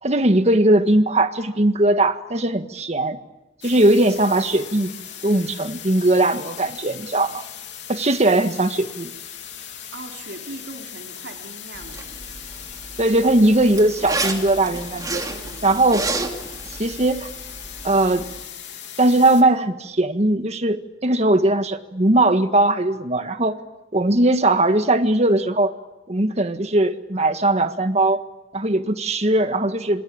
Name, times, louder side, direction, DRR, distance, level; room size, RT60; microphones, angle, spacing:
voice 1, 0.0-3.2 3.6-4.9 5.2-7.4 7.9-9.1 13.0-15.2 15.6-16.1 16.8-17.3 17.8-18.3 19.0-23.6 23.9-25.7 26.1-28.2 28.5-30.0, right 2 dB, 35° right, 8 dB, 1.6 m, -19 dB
sound 1, 3.6-19.4, left 9 dB, 70° left, 3.4 m, -38 dB
voice 2, 9.9-12.4 15.2-15.7, right 2 dB, 75° right, 2 dB, 3.3 m, -40 dB
Zipper (clothing), 11.7-18.4, right 3 dB, 20° right, 2.9 m, -32 dB
27.0 x 23.5 x 8.8 m, 0.99 s
head